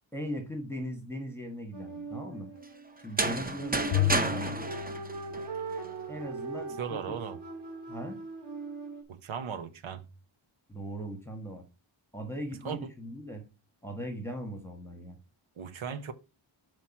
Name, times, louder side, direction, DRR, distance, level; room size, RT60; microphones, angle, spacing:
voice 1, 0.1-2.5 3.0-4.6 6.1-7.0 7.9-8.2 10.7-11.6 12.1-13.5 13.8-15.2, equal, 5° left, 1.3 m, -38 dB
sound 1, 1.7-9.0, right 4 dB, 55° right, 2.1 m, -40 dB
sound 2, 3.0-5.9, right 2 dB, 20° right, 0.7 m, -31 dB
Bowed string instrument, 3.9-6.3, left 14 dB, 65° left, 0.5 m, -33 dB
voice 2, 6.8-7.4 9.1-10.1 12.6-12.9 15.6-16.1, right 7 dB, 70° right, 0.9 m, -37 dB
5.8 x 4.7 x 5.8 m
wide cardioid pair, 150°, 48 cm